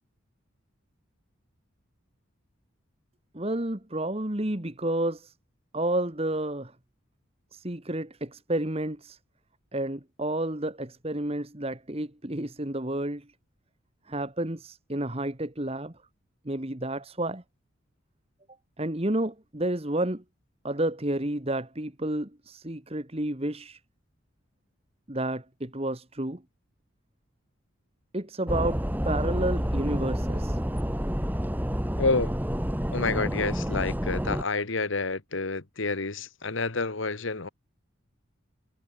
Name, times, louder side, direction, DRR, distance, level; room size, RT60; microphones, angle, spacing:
voice 1, 3.3-5.3 5.7-6.7 7.5-9.2 9.7-13.3 14.1-15.9 16.4-17.4 18.8-20.2 20.6-23.8 25.1-26.4 28.1-28.8 29.0-30.6, right 1 dB, 30° right, 1.8 m, -30 dB
sound 1, 28.5-34.4, equal, 10° right, 2.7 m, -29 dB
voice 2, 32.0-32.3 32.9-37.5, left 3 dB, 70° left, 1.4 m, -29 dB
head